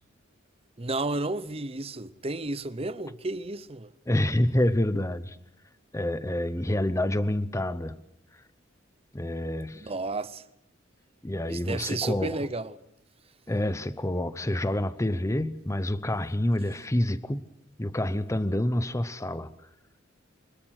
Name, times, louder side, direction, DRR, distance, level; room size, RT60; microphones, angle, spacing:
voice 1, 0.8-3.9 9.8-10.4 11.5-12.7, right 2 dB, 30° right, 0.8 m, -32 dB
voice 2, 4.1-5.4 5.9-8.0 9.1-9.9 11.2-12.5 13.5-17.4 17.8-19.5, left 1 dB, 15° left, 0.8 m, -27 dB
25.5 x 21.5 x 6.5 m
head